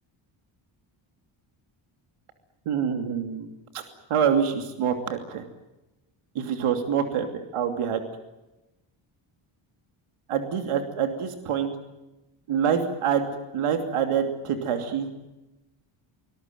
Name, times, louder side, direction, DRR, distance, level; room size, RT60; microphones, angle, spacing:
voice 1, 2.7-3.5 3.7-3.8 4.1-5.4 6.3-7.3 7.5-8.0 10.3-11.7 12.5-13.3 13.5-15.1, right 7 dB, 80° right, 6 dB, 2.9 m, -26 dB
25.0 x 21.0 x 9.2 m, 1.0 s
wide cardioid pair, 165°, 50 cm